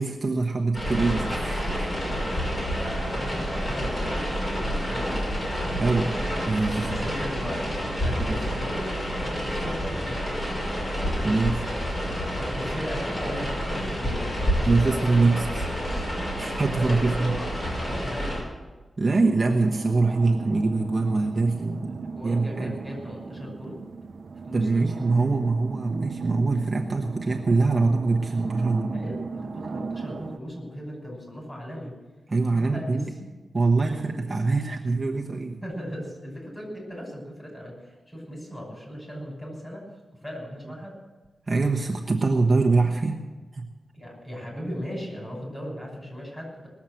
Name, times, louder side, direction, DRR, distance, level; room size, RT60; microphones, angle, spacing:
voice 1, 0.0-2.0 5.7-6.1 6.5-7.0 8.3-8.4 11.2-11.7 14.7-15.7 16.4-17.4 19.0-22.8 24.5-29.0 32.3-33.1 33.5-35.6 41.5-43.2 43.5-43.7, right 3 dB, 30° right, 0 dB, 1.1 m, -24 dB
sound 1, 0.7-18.4, equal, 40° left, 5.9 m, -29 dB
voice 2, 2.7-5.4 5.7-6.0 6.8-10.4 12.3-15.5 15.8-18.4 22.0-23.8 24.5-24.8 28.9-32.0 32.5-33.3 33.9-34.6 35.6-39.9 40.2-41.0 43.9-46.7, equal, 20° left, -2 dB, 5.7 m, -38 dB
sound 2, 19.6-30.4, right 4 dB, 60° right, 0.7 m, -37 dB
19.5 x 7.3 x 7.6 m, 1.2 s
wide cardioid pair, 140°, 0 cm